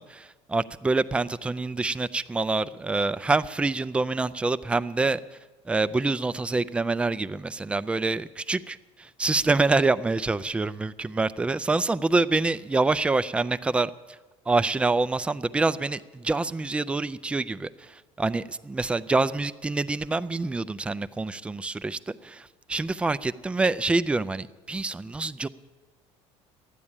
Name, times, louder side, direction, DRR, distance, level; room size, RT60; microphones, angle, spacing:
voice 1, 0.0-5.2 5.7-13.9 14.5-25.5, right 3 dB, 10° right, 14 dB, 0.3 m, -26 dB
12.5 x 9.6 x 8.8 m, 1.2 s
cardioid pair, 135°, 13 cm